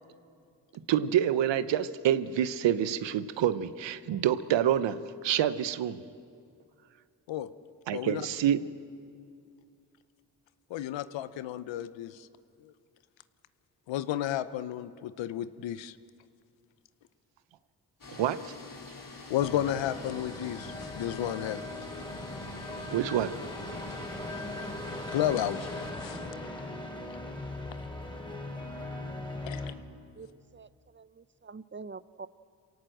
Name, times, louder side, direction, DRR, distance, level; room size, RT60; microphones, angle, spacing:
voice 1, 0.9-6.0 7.9-8.6 18.1-18.5 22.9-23.3, right 10 dB, 80° right, 14 dB, 0.9 m, -27 dB
voice 2, 7.9-8.2 10.7-12.3 12.6-12.7 13.9-15.9 19.3-21.6 25.1-26.3 29.5-29.7, left 11 dB, 85° left, 14 dB, 0.8 m, -32 dB
sound 1, 18.0-25.9, left 3 dB, 45° left, 3.2 m, -47 dB
sound 2, 19.4-29.7, left 1 dB, 10° left, 4.1 m, -39 dB
voice 3, 30.2-32.3, right 4 dB, 25° right, 16 dB, 0.7 m, -46 dB
26.5 x 18.0 x 7.8 m, 2.4 s
supercardioid pair, 40°, 43 cm